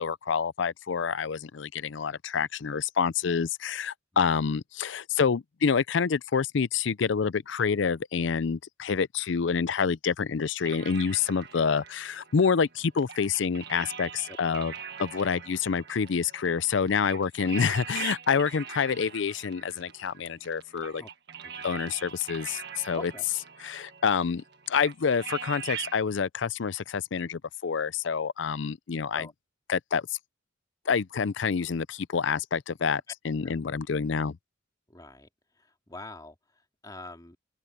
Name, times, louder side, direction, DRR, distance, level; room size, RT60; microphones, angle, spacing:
voice 1, 0.0-14.7 15.0-21.0 21.6-23.1 23.6-29.3 29.7-30.1 30.9-34.4, left 6 dB, 65° left, 0.5 m, -27 dB
sound 1, 10.6-26.0, right 8 dB, 60° right, 1.6 m, -42 dB
voice 2, 21.4-21.9 22.9-23.2 29.1-29.3 33.4-33.6 34.9-37.4, left 2 dB, 20° left, 2.8 m, -45 dB
open air
head